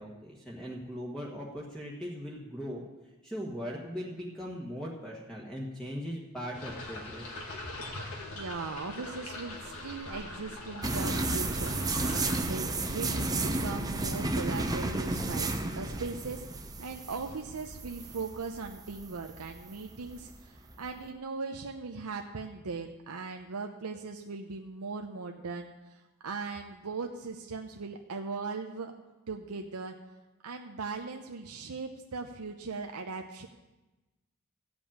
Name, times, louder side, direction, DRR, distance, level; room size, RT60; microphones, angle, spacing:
voice 1, 0.0-2.8 3.2-7.2, equal, 5° left, -3 dB, 1.4 m, -39 dB
sound 1, 6.5-12.4, left 2 dB, 75° left, 2.1 m, -42 dB
voice 2, 8.3-28.9 29.3-30.0 30.4-33.5, right 4 dB, 80° right, 4 dB, 0.7 m, -39 dB
sound 2, 10.8-21.0, right 2 dB, 15° right, 0.7 m, -33 dB
14.5 x 5.2 x 8.7 m, 1.1 s
head